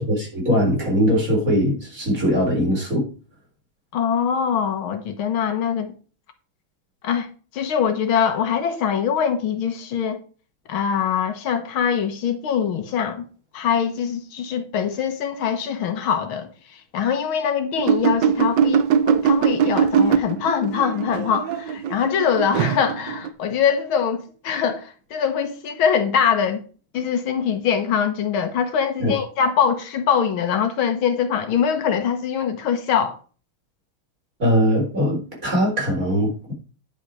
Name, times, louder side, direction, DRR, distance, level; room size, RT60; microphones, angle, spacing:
voice 1, 0.0-3.1 29.0-29.1 34.4-36.5, equal, 40° right, 4.5 m, -21 dB
voice 2, 3.9-5.9 7.0-10.2 10.7-13.2 13.5-26.6 26.9-33.2, left 7 dB, 80° left, 2.1 m, -23 dB
sound 1, 17.8-23.3, right 7 dB, 65° right, 1.4 m, -21 dB
10.0 x 5.6 x 4.8 m
omnidirectional pair, 2.2 m